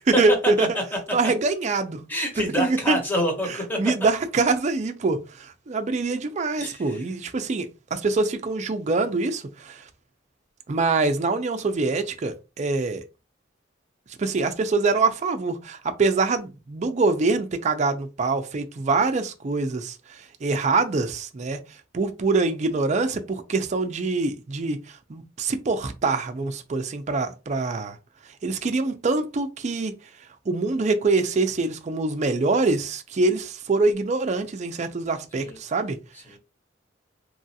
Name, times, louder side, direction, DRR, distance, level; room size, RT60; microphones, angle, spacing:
voice 1, 0.2-0.7 1.1-2.0 2.6-3.0 3.8-9.8 10.7-13.0 14.2-21.6 21.9-28.0 28.4-30.0 30.5-36.0, right 3 dB, 40° right, 0.4 m, -24 dB
voice 2, 2.1-3.8 6.6-7.0 35.4-35.6 36.1-36.4, equal, 10° left, 0.9 m, -28 dB
3.0 x 2.4 x 2.7 m
head